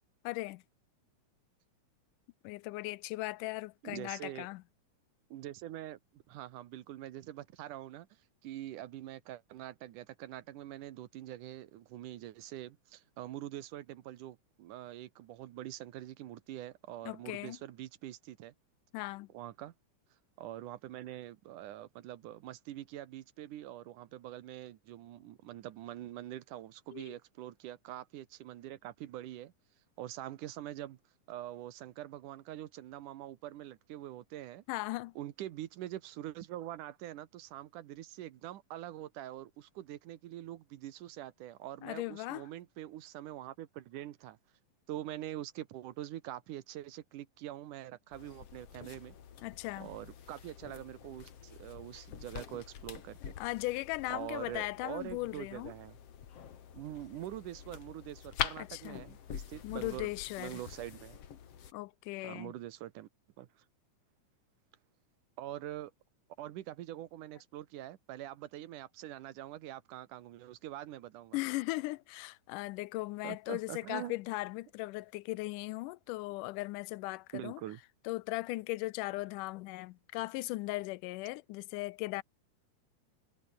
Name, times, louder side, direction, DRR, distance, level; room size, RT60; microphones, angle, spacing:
voice 1, 0.2-0.6 2.4-4.6 17.1-17.6 18.9-19.3 26.9-27.2 34.7-35.1 41.8-42.4 49.4-49.9 53.4-55.7 58.6-59.0 59.6-60.6 61.7-62.5 71.3-77.6 78.1-82.2, left 20 dB, 85° left, 2.2 m, -38 dB
voice 2, 3.8-4.5 5.3-8.1 8.4-18.5 19.3-19.7 20.4-29.5 30.0-31.0 31.3-34.6 35.2-44.4 44.9-49.2 49.8-53.4 54.1-56.0 56.7-60.1 60.4-61.2 62.2-63.1 63.4-63.5 65.4-65.9 66.4-71.4 73.2-74.1 77.3-77.8, right 13 dB, 80° right, 2.7 m, -44 dB
sound 1, 48.1-61.7, left 8 dB, 55° left, 2.7 m, -45 dB
omnidirectional pair, 3.6 m